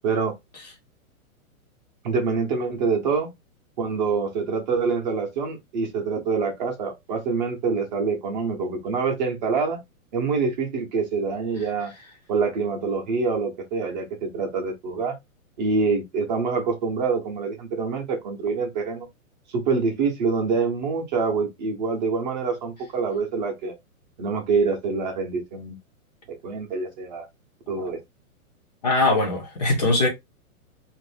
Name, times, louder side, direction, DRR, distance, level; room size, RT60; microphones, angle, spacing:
voice 1, 2.0-3.3 3.8-9.8 10.1-11.9 12.3-15.1 15.6-19.1 19.5-23.7 24.2-25.7 26.4-27.3 27.7-28.0, right 4 dB, 30° right, 0.7 m, -25 dB
voice 2, 28.8-30.1, left 2 dB, 30° left, 0.5 m, -21 dB
2.5 x 2.0 x 3.2 m
hypercardioid pair, 160°, 43 cm